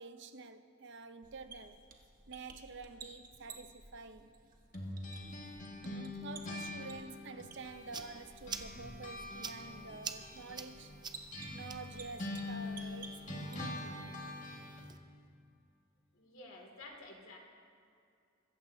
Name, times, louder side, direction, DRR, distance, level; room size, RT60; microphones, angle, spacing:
voice 1, 0.0-1.8 2.3-4.3 5.8-10.9 11.5-14.0, right 4 dB, 60° right, 0.7 m, -49 dB
sound 1, 1.2-14.0, right 4 dB, 45° right, 1.3 m, -55 dB
sound 2, 4.7-8.2 8.5-14.9, left 2 dB, 40° left, 1.9 m, -44 dB
sound 3, 7.6-15.0, right 5 dB, 20° right, 0.5 m, -49 dB
voice 2, 16.1-17.4, left 2 dB, 90° left, 2.5 m, -51 dB
24.0 x 14.0 x 2.8 m
head